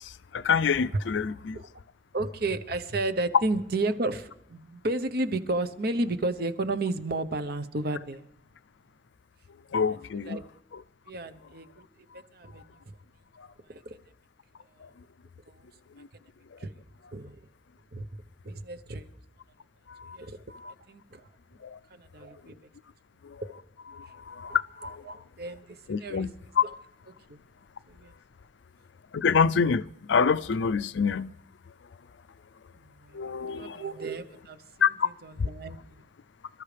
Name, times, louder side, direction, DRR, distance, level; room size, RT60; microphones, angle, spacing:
voice 1, 0.3-1.6 9.7-10.4 20.0-20.2 21.6-21.8 23.9-24.6 25.9-26.3 26.6-26.7 29.1-31.3 33.1-33.8 34.8-35.1, left 6 dB, 80° left, 0.5 m, -26 dB
voice 2, 2.1-8.3 9.9-10.4 11.1-11.7 12.1-12.8 13.7-14.0 15.5-15.7 16.6-16.7 17.1-17.4 17.9-18.1 18.4-19.0 20.0-21.3 21.9-22.6 24.1-24.2 24.5-26.7 27.3-27.4 27.9-28.1 32.7-36.0, right 2 dB, 55° right, 0.9 m, -33 dB
27.0 x 13.5 x 3.4 m
head